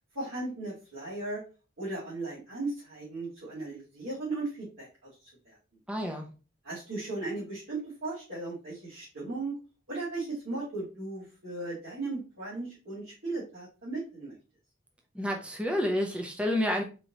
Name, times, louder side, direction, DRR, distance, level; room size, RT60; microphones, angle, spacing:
voice 1, 0.1-1.4 1.8-5.6 6.6-9.6 9.9-14.4, right 2 dB, 75° right, -10 dB, 1.8 m, -37 dB
voice 2, 5.9-6.3 15.1-16.8, left 1 dB, 5° right, 2 dB, 0.5 m, -29 dB
4.2 x 2.7 x 2.8 m, 0.34 s
head